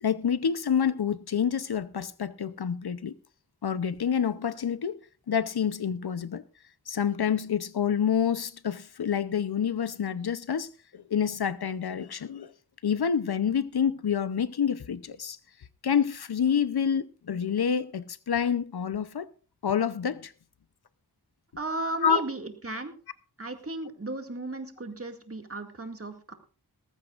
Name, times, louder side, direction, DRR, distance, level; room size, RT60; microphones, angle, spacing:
voice 1, 0.0-3.1 3.6-5.0 5.3-6.4 6.9-12.5 12.8-15.4 15.8-19.3 19.6-20.3 22.0-22.2, left 7 dB, 80° left, 0.8 m, -28 dB
voice 2, 21.6-22.9 23.4-26.3, right 2 dB, 35° right, 2.1 m, -35 dB
18.5 x 14.5 x 2.5 m
wide cardioid pair, 65°, 37 cm